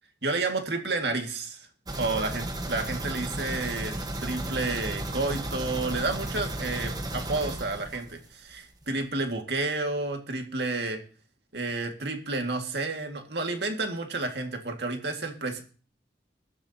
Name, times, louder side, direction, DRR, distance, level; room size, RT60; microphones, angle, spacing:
voice 1, 0.2-1.7 2.0-3.9 4.2-11.0 11.5-15.6, right 3 dB, 75° right, 4 dB, 2.1 m, -30 dB
sound 1, 1.9-8.5 8.8-8.9 9.3-9.4, right 1 dB, 20° right, 1.3 m, -34 dB
21.5 x 12.0 x 2.9 m, 0.39 s
head